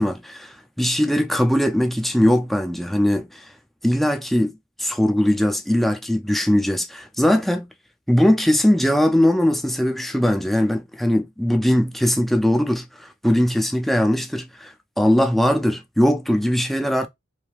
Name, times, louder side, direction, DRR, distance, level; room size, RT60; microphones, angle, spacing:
voice 1, 0.0-3.5 3.8-4.5 4.8-7.7 8.1-17.1, left 1 dB, ahead, 0.3 m, -20 dB
3.1 x 2.7 x 2.3 m
head